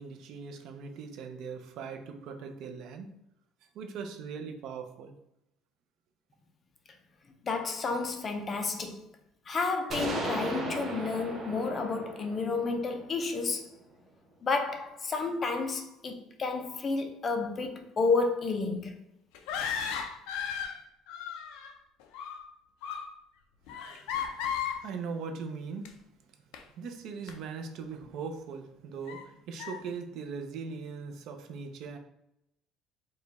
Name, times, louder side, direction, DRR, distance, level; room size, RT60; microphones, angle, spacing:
voice 1, 0.0-3.1 3.7-5.2 24.1-24.5 24.8-25.9 26.8-32.0, right 5 dB, 50° right, 0.5 m, -40 dB
voice 2, 7.4-9.0 9.5-13.6 14.4-18.9, left 4 dB, 25° left, 0.4 m, -31 dB
sound 1, 9.9-13.7, right 2 dB, 20° right, 1.0 m, -37 dB
sound 2, 19.3-20.8 21.1-21.7 22.0-22.5 22.8-23.1 23.7-24.8 25.8-25.9 26.5-26.6 27.3-27.4 28.0-28.1 29.1-29.2 29.6-29.8, left 7 dB, 85° left, 0.5 m, -35 dB
4.9 x 2.2 x 4.0 m
cardioid pair, 180°, 0 cm